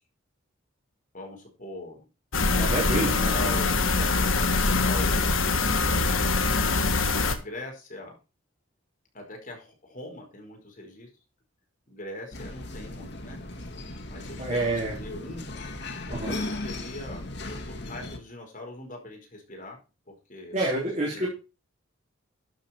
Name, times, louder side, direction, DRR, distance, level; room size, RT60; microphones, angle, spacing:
voice 1, 1.1-2.0 2.5-6.6 7.4-8.2 9.1-11.1 11.9-13.4 14.0-15.5 16.3-19.8 20.1-21.3, left 1 dB, 40° left, 1 dB, 4.8 m, -41 dB
sound 1, 2.3-7.3, left 3 dB, 75° left, 1.5 m, -23 dB
voice 2, 2.5-3.5 14.4-14.9 16.1-16.3 20.5-21.3, right 2 dB, 35° right, -4 dB, 3.4 m, -28 dB
sound 2, 12.3-18.2, left 2 dB, 55° left, 1.8 m, -37 dB
12.0 x 7.2 x 4.5 m, 0.30 s
head